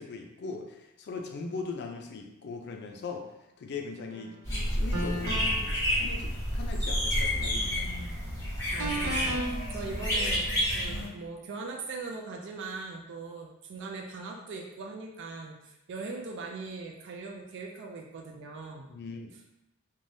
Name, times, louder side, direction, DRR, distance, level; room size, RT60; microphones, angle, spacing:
voice 1, 0.0-3.3 3.6-7.9 18.9-19.3, left 4 dB, 50° left, 3 dB, 0.4 m, -40 dB
sound 1, 4.1-4.3 4.9-5.7 8.8-9.5, right 1 dB, 85° right, 0.8 m, -33 dB
sound 2, 4.4-11.1, equal, 15° left, 1.3 m, -30 dB
voice 2, 7.5-8.2 8.7-10.4 10.7-18.9, right 3 dB, 55° right, 1 dB, 0.3 m, -40 dB
3.2 x 2.2 x 2.6 m, 0.91 s
head